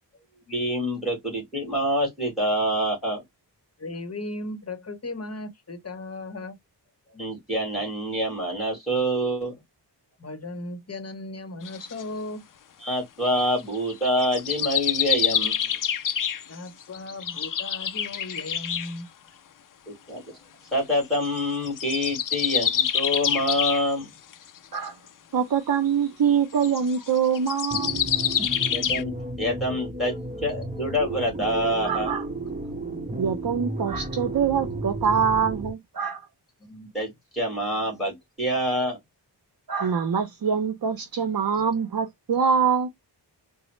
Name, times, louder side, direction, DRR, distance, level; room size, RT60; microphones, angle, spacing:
voice 1, 0.5-3.2 7.1-9.5 12.8-15.8 19.9-20.2 20.7-24.1 28.7-32.1 36.7-39.0, equal, ahead, 1.8 m, -26 dB
voice 2, 3.8-6.6 10.2-12.4 16.5-19.1, left 2 dB, 35° left, 0.9 m, -36 dB
sound 1, 11.6-12.0 13.6-18.9 21.0-21.4 21.7-23.9 24.3-24.4 24.8-24.9 26.5-29.0, left 8 dB, 50° left, 0.4 m, -26 dB
voice 3, 25.3-28.1 31.8-32.2 33.2-36.2 39.7-42.9, right 7 dB, 55° right, 0.7 m, -24 dB
sound 2, 27.7-35.7, right 2 dB, 20° right, 0.7 m, -33 dB
3.9 x 2.0 x 3.1 m
wide cardioid pair, 105°, 43 cm